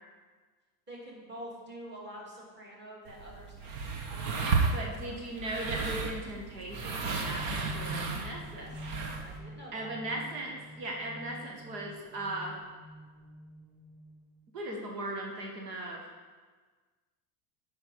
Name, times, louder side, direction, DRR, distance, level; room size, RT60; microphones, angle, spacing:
voice 1, 0.9-5.3 8.5-8.9 9.2-9.9, equal, 20° right, -4 dB, 2.6 m, -47 dB
sound 1, 3.1-9.4, right 4 dB, 60° right, 1.4 m, -33 dB
voice 2, 4.7-8.7 9.7-12.5 14.5-16.0, right 1 dB, 85° right, 0 dB, 1.9 m, -38 dB
sound 2, 6.7-14.5, equal, 5° right, 1.1 m, -48 dB
9.5 x 5.2 x 5.6 m, 1.4 s
supercardioid pair, 125°, 48 cm